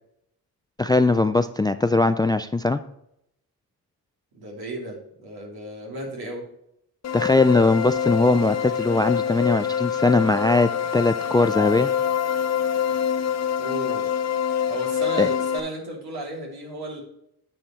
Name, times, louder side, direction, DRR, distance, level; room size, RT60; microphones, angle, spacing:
voice 1, 0.8-2.8 7.1-11.9 15.2-15.3, left 2 dB, 10° left, 12 dB, 0.3 m, -20 dB
voice 2, 4.3-6.5 13.6-14.0 14.7-17.0, right 1 dB, 70° right, -1 dB, 2.8 m, -34 dB
sound 1, 7.0-15.6, left 8 dB, 40° left, 0.7 m, -25 dB
9.1 x 5.3 x 4.3 m, 0.77 s
cardioid pair, 70°, 39 cm